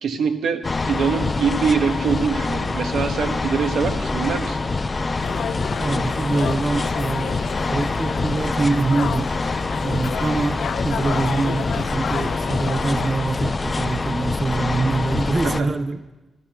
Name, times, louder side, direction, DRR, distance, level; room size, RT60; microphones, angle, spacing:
voice 1, 0.0-4.6 15.4-15.7, right 6 dB, 85° right, 6 dB, 1.4 m, -23 dB
sound 1, 0.6-15.6, left 3 dB, 30° left, 0.6 m, -25 dB
sound 2, 5.2-13.1, left 7 dB, 75° left, 0.6 m, -31 dB
voice 2, 5.8-7.4 7.7-9.3 9.8-16.0, right 3 dB, 30° right, 13 dB, 0.4 m, -24 dB
13.0 x 12.0 x 6.0 m, 1.1 s
cardioid pair, 110°, 0 cm